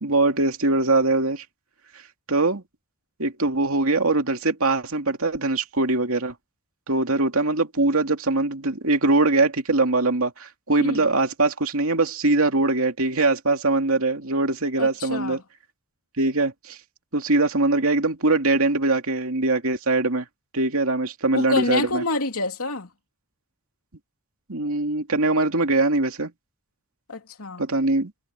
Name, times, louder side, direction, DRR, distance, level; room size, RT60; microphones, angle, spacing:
voice 1, 0.0-1.4 2.3-2.6 3.2-6.3 6.9-15.4 16.2-16.8 17.1-20.3 20.5-22.0 24.5-26.3 27.6-28.1, right 2 dB, 70° right, 2.7 m, -22 dB
voice 2, 14.8-15.4 21.3-22.9 27.1-27.7, left 2 dB, 75° left, 3.0 m, -27 dB
head